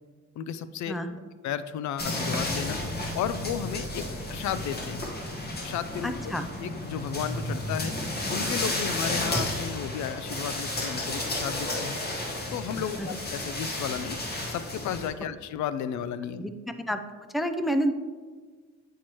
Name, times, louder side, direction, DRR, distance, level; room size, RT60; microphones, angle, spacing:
voice 1, 0.4-0.9 1.4-2.8 3.1-4.0 4.3-5.1 5.6-6.3 6.6-8.0 8.3-12.0 12.5-14.2 14.5-16.5, left 9 dB, 70° left, 13 dB, 0.5 m, -33 dB
voice 2, 0.9-1.2 6.0-6.4 12.8-13.1 16.4-16.5 16.9-17.0 17.3-17.9, equal, ahead, 8 dB, 0.4 m, -28 dB
sound 1, 2.0-15.1, left 1 dB, 30° left, 1.4 m, -32 dB
10.0 x 4.6 x 3.0 m, 1.5 s
cardioid pair, 90°, 30 cm